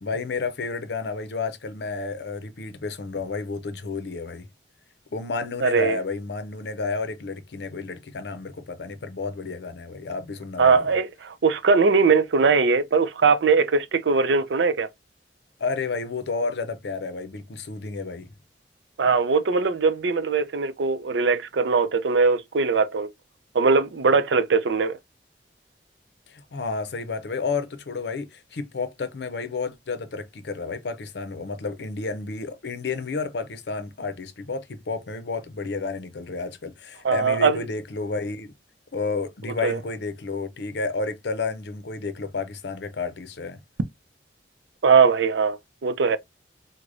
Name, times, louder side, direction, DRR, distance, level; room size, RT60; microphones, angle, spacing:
voice 1, 0.0-4.5 5.1-10.9 15.6-18.3 26.3-38.5 38.9-43.6, left 4 dB, 70° left, 0.6 m, -31 dB
voice 2, 5.6-6.0 10.6-14.9 19.0-23.1 23.5-25.0 37.0-37.6 39.6-39.8 44.8-46.2, right 4 dB, 90° right, 0.5 m, -20 dB
4.8 x 2.1 x 2.6 m
head